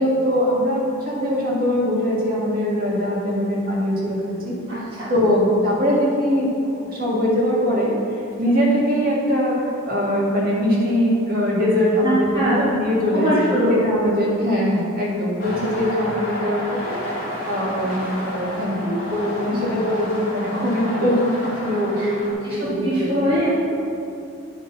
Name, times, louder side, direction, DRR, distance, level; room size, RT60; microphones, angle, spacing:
voice 1, 0.0-4.2 4.4-4.5 5.1-6.5 6.9-7.9 8.4-17.0 17.5-21.2 21.6-23.3, equal, 40° right, -6 dB, 1.8 m, -21 dB
voice 2, 4.7-5.1 12.0-12.7 13.1-13.8 15.5-15.7 19.5-19.8 22.0-22.1 22.4-23.5, equal, 25° right, -11 dB, 1.3 m, -23 dB
sound 1, 15.4-22.3, left 1 dB, 45° left, 1.8 m, -31 dB
9.2 x 4.1 x 5.5 m, 2.6 s
head